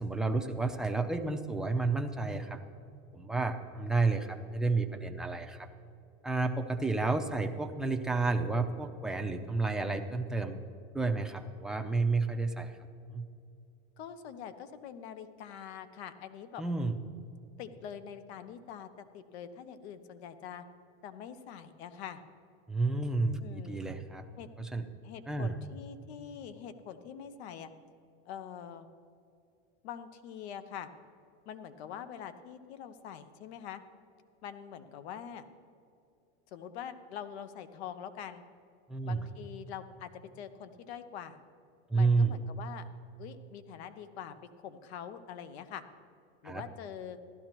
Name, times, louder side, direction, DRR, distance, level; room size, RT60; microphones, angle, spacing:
voice 1, 0.0-2.6 3.1-5.7 6.2-10.6 10.9-12.8 13.1-13.3 16.6-17.0 22.7-24.3 24.6-24.9 25.3-25.6 38.9-39.2 41.9-42.3 46.4-46.6, right 3 dB, ahead, 4 dB, 0.5 m, -31 dB
voice 2, 14.0-16.6 17.6-20.6 21.0-22.2 23.4-23.8 24.4-24.5 25.0-27.7 28.3-28.9 29.8-30.9 31.5-33.8 34.4-35.4 36.5-38.4 39.0-41.4 41.9-42.9 43.2-45.8 46.4-47.2, left 8 dB, 75° left, 11 dB, 0.9 m, -44 dB
15.5 x 12.0 x 3.0 m, 2.5 s
supercardioid pair, 130°, 33 cm